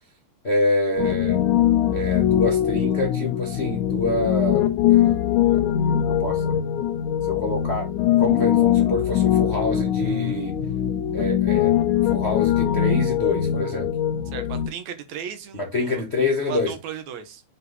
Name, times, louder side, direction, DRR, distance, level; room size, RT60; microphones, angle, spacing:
voice 1, 0.4-1.4 1.9-5.1 6.0-6.6 7.2-7.9 8.2-10.6 11.1-11.7 12.1-13.9 15.5-16.7, left 2 dB, 45° left, 0.8 m, -26 dB
Piano, 1.0-14.7, left 11 dB, 85° left, 2.3 m, -21 dB
voice 2, 14.3-16.0 16.4-17.4, right 8 dB, 75° right, 2.4 m, -36 dB
6.6 x 3.6 x 5.4 m
omnidirectional pair, 3.4 m